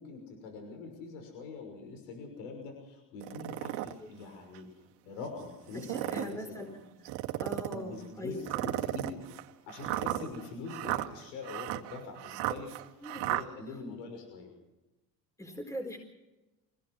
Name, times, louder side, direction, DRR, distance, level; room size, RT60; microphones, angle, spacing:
voice 1, 0.0-4.7 5.0-6.6 7.7-9.2 9.7-14.5, left 4 dB, 85° left, 4 dB, 6.1 m, -43 dB
sound 1, 3.2-3.9 4.5-4.6 5.7-6.4 7.0-7.8 8.4-13.4, right 17 dB, 80° right, 1.9 m, -34 dB
voice 2, 5.7-6.7 7.0-7.1 7.4-8.7 13.0-13.2 13.7-13.8 15.4-16.0, left 1 dB, 10° left, 3 dB, 4.3 m, -41 dB
25.5 x 17.5 x 6.3 m, 1.0 s
supercardioid pair, 100°, 38 cm